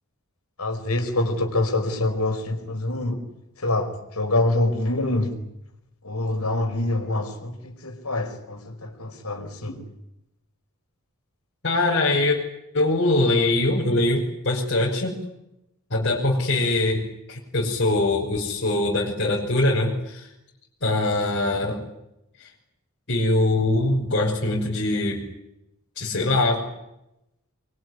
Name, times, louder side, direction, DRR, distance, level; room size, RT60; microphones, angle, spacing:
voice 1, 0.6-3.2 3.6-5.4 6.0-9.8, left 2 dB, 85° left, 5 dB, 5.2 m, -25 dB
voice 2, 11.6-12.4 12.7-15.1 15.9-17.0 17.3-20.3 20.8-21.8 23.1-25.2 26.0-26.7, left 2 dB, 55° left, -4 dB, 5.9 m, -22 dB
25.5 x 23.0 x 9.8 m, 0.87 s
head